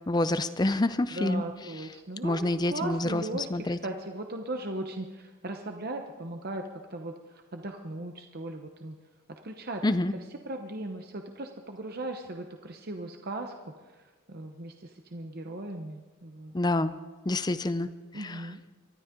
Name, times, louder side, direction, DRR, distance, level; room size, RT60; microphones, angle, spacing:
voice 1, 0.1-1.4 2.2-3.8 9.8-10.1 16.5-17.0 17.3-17.9 18.2-18.4, left 2 dB, 20° left, 13 dB, 0.5 m, -27 dB
voice 2, 1.1-2.4 2.7-6.6 6.9-9.0 9.4-9.8 10.4-16.5 18.1-18.6, right 2 dB, 45° right, 4 dB, 0.9 m, -38 dB
24.0 x 13.0 x 3.8 m, 1.2 s
head